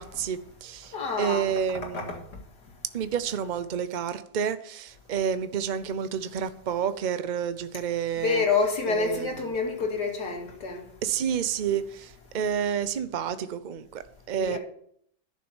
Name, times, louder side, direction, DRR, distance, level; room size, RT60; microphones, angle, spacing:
voice 1, 0.0-2.2 2.9-8.4 8.9-9.3 11.0-14.6, right 8 dB, 55° right, 0.5 m, -30 dB
voice 2, 0.9-1.5 1.9-2.2 8.2-10.8 14.4-14.6, left 4 dB, 70° left, 2.7 m, -27 dB
11.0 x 6.6 x 7.1 m
omnidirectional pair, 1.8 m